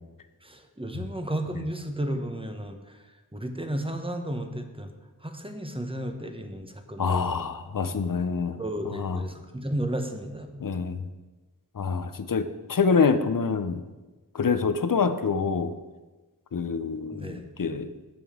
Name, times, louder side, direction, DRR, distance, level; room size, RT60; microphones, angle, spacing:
voice 1, 0.4-3.0 3.3-4.9 5.2-7.5 8.6-10.5 17.1-17.8, right 1 dB, 15° right, 6 dB, 0.9 m, -33 dB
voice 2, 7.0-8.6 8.9-9.2 10.6-11.0 11.8-13.8 14.3-15.7 16.5-17.9, left 5 dB, 55° left, 11 dB, 0.6 m, -26 dB
15.0 x 5.2 x 3.7 m, 1.2 s
wide cardioid pair, 50°, 39 cm